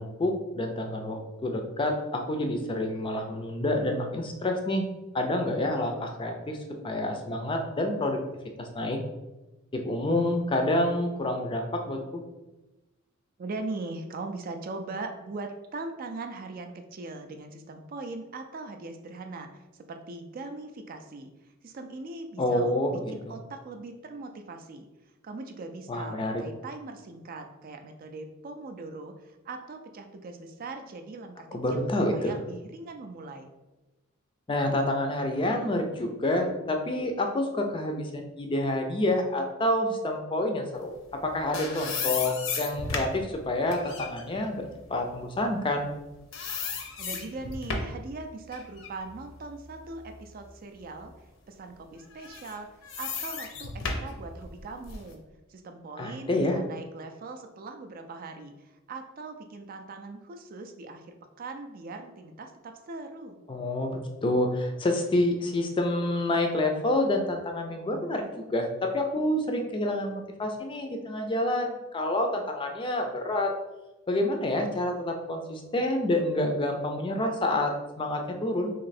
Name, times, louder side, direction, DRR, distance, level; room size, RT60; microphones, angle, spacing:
voice 1, 0.0-4.8 5.1-6.6 6.8-8.2 8.6-9.0 9.7-12.2 22.4-23.4 25.9-26.4 31.5-32.4 34.5-40.9 41.2-45.9 56.0-56.6 63.5-73.5 74.1-78.7, left 1 dB, 25° left, 3 dB, 0.4 m, -28 dB
voice 2, 13.4-24.9 25.2-33.5 47.0-52.7 53.0-55.2 55.5-63.4, right 3 dB, 45° right, 6 dB, 0.4 m, -40 dB
sound 1, 41.1-46.0 46.3-48.1 48.5-50.5 51.0-51.1 52.1-55.1, left 4 dB, 65° left, 0.6 m, -35 dB
3.1 x 2.7 x 4.1 m, 1.1 s
head